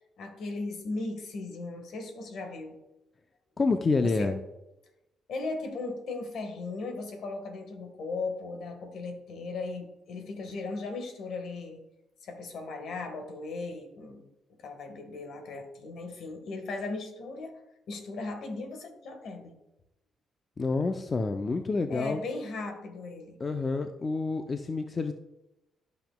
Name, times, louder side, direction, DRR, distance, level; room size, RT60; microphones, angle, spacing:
voice 1, 0.2-2.8 4.0-4.4 5.3-11.8 12.2-14.3 14.6-17.6 17.9-19.6 21.9-23.4, left 3 dB, 70° left, 6 dB, 1.5 m, -37 dB
voice 2, 3.6-4.4 20.6-22.2 23.4-25.1, left 3 dB, 30° left, 7 dB, 0.5 m, -28 dB
12.0 x 5.9 x 2.3 m, 0.93 s
cardioid pair, 90°, 0 cm